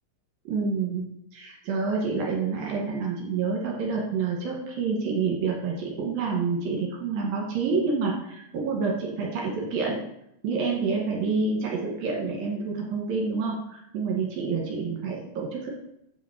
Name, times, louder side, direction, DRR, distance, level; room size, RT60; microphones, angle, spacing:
voice 1, 0.5-1.1 1.3-10.0 10.4-15.7, right 4 dB, 65° right, -1 dB, 3.5 m, -28 dB
8.3 x 6.4 x 6.9 m, 0.79 s
omnidirectional pair, 4.7 m